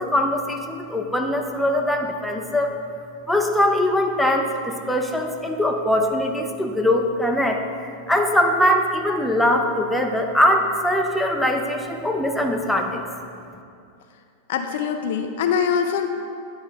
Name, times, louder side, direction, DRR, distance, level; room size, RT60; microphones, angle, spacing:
voice 1, 0.0-2.7 3.3-7.6 8.1-13.1, left 1 dB, 5° left, 2 dB, 0.6 m, -21 dB
voice 2, 14.5-16.1, left 7 dB, 55° left, 6 dB, 0.4 m, -23 dB
9.4 x 3.9 x 3.4 m, 2.4 s
figure-of-eight pair, 90°, 0 cm